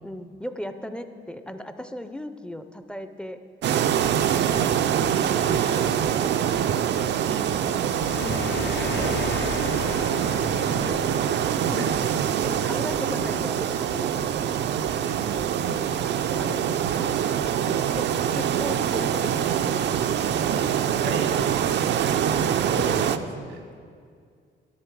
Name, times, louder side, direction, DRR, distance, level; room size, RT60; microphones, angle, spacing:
voice 1, 0.0-3.4 5.3-6.4 10.9-11.1 11.7-12.1 12.4-14.4 16.4-16.7 17.7-19.9, left 1 dB, 5° left, 9 dB, 0.5 m, -36 dB
sound 1, 3.6-23.2, right 9 dB, 60° right, 0.4 m, -24 dB
voice 2, 7.2-7.9 8.6-9.2 10.7-11.3 11.5-12.0 15.2-16.0 20.5-21.3 22.1-22.4 22.7-23.6, right 3 dB, 85° right, 4 dB, 1.3 m, -36 dB
sound 2, 8.0-13.1, left 6 dB, 65° left, 0.7 m, -35 dB
12.5 x 6.2 x 4.6 m, 2.2 s
cardioid pair, 90°, 20 cm